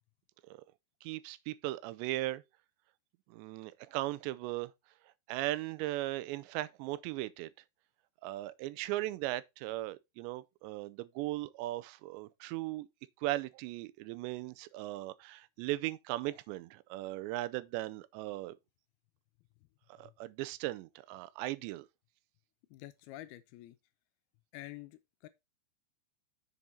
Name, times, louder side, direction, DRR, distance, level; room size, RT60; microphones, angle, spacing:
voice 1, 1.0-2.4 3.3-4.7 5.3-7.5 8.2-12.9 13.2-18.5 20.0-21.9, right 17 dB, 90° right, 2.9 m, -38 dB
voice 2, 22.7-23.8 24.5-25.3, left 16 dB, 80° left, 2.3 m, -48 dB
7.1 x 6.1 x 4.2 m
omnidirectional pair, 5.0 m